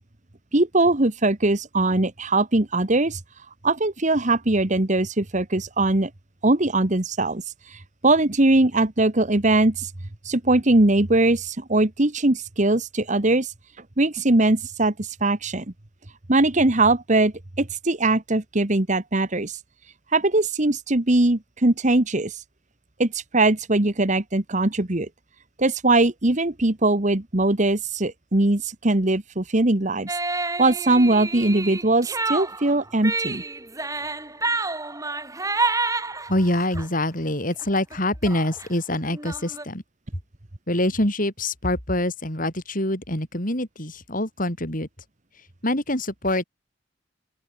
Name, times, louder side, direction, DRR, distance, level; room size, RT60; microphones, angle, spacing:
voice 1, 0.5-3.2 3.6-6.1 6.4-7.4 7.7-9.9 10.2-13.5 14.0-15.6 16.3-19.6 20.1-22.3 23.0-25.1 25.6-30.1 30.6-33.4, right 2 dB, 40° right, 1.4 m, -21 dB
sound 1, 30.1-36.9 37.3-37.7 37.9-38.0 38.2-39.7, right 3 dB, 15° right, 6.3 m, -29 dB
voice 2, 36.3-39.8 40.7-44.9 45.6-46.4, left 1 dB, 45° left, 6.9 m, -25 dB
open air
head